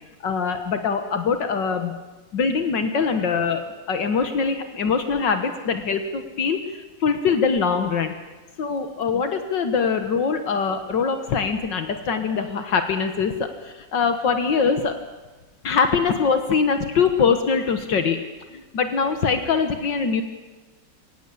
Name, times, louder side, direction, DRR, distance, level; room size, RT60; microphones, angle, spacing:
voice 1, 0.2-1.9 2.3-8.2 8.6-14.9 15.6-18.2 18.5-20.2, left 5 dB, 75° left, 7 dB, 2.1 m, -23 dB
22.5 x 18.0 x 8.6 m, 1.2 s
omnidirectional pair, 2.0 m